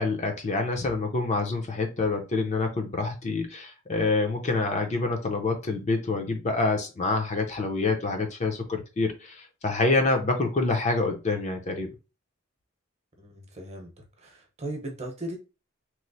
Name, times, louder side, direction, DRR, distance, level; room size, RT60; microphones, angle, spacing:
voice 1, 0.0-11.9, left 3 dB, 35° left, 0.6 m, -27 dB
voice 2, 13.2-15.4, right 1 dB, 30° right, 0.9 m, -38 dB
3.1 x 2.0 x 4.0 m
head